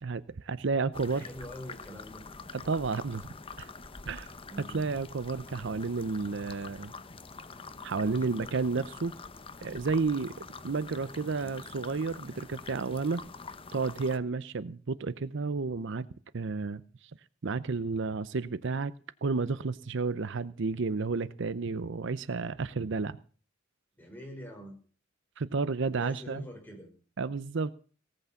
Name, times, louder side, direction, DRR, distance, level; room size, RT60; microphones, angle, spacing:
voice 1, 0.0-1.2 2.5-3.2 3.6-3.7 4.1-4.3 4.7-6.9 7.8-9.1 9.6-13.2 13.7-16.1 16.3-16.8 17.4-18.9 19.2-23.2 25.4-26.4 27.2-27.7, right 4 dB, 65° right, 17 dB, 0.6 m, -31 dB
sound 1, 0.9-14.2, left 4 dB, 30° left, 0.8 m, -46 dB
voice 2, 1.1-2.2 4.4-4.8 7.9-8.5 11.1-11.6 24.0-24.8 25.9-26.9, equal, 10° left, 1 dB, 5.4 m, -45 dB
18.5 x 8.4 x 7.0 m, 0.40 s
head